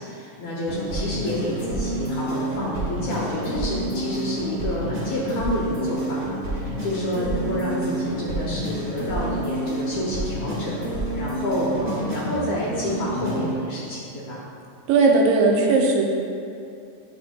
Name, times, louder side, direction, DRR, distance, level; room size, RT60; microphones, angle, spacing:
voice 1, 0.0-14.4, equal, 70° left, -5 dB, 1.8 m, -29 dB
sound 1, 0.7-13.6, right 1 dB, 60° right, 0.6 m, -29 dB
voice 2, 14.9-16.0, right 3 dB, 80° right, 0 dB, 2.1 m, -17 dB
9.7 x 6.0 x 2.2 m, 2.6 s
omnidirectional pair, 4.1 m